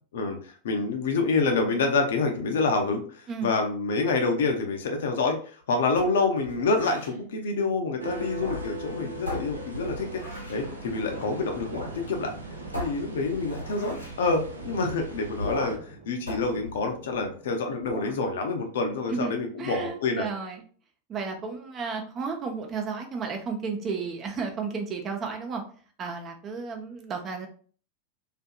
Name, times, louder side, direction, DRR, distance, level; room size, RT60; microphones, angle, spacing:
voice 1, 0.1-12.3 12.8-20.2, left 3 dB, 60° left, 4 dB, 0.5 m, -27 dB
sound 1, 5.9-7.2 8.3-8.9 9.3-10.7 11.7-12.0 12.2-12.3 12.7-14.2 15.4-15.9 16.3-17.4 17.8-18.2, left 1 dB, 85° left, 0.9 m, -37 dB
sound 2, 8.0-15.8, right 2 dB, 75° right, 0.5 m, -40 dB
sound 3, 10.6-17.7, right 2 dB, 60° right, 0.9 m, -47 dB
voice 2, 19.6-20.6 21.1-25.6 26.0-27.5, right 5 dB, 25° right, 3 dB, 0.6 m, -33 dB
2.6 x 2.5 x 2.2 m, 0.43 s
figure-of-eight pair, 90°, 0 cm